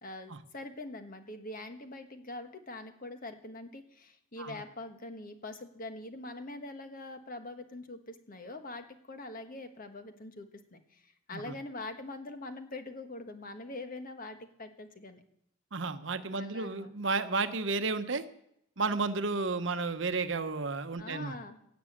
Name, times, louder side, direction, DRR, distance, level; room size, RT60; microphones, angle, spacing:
voice 1, 0.0-15.2 16.3-16.9 21.0-21.6, left 2 dB, 45° left, 7 dB, 1.4 m, -44 dB
voice 2, 15.7-18.2 18.8-21.4, right 3 dB, 65° right, 10 dB, 1.0 m, -32 dB
17.0 x 6.2 x 8.7 m, 0.76 s
head